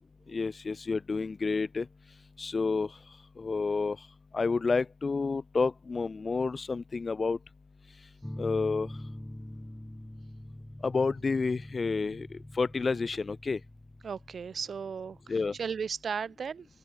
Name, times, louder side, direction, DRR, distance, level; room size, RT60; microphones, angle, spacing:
voice 1, 0.3-1.9 2.4-2.9 3.4-4.0 4.3-7.4 8.4-8.9 10.8-12.3 12.6-13.6 15.3-15.5, left 4 dB, 50° left, 1.9 m, -29 dB
sound 1, 8.2-15.9, left 1 dB, 10° left, 6.5 m, -44 dB
voice 2, 14.0-16.7, right 6 dB, 75° right, 4.5 m, -36 dB
cardioid pair, 65°, 0 cm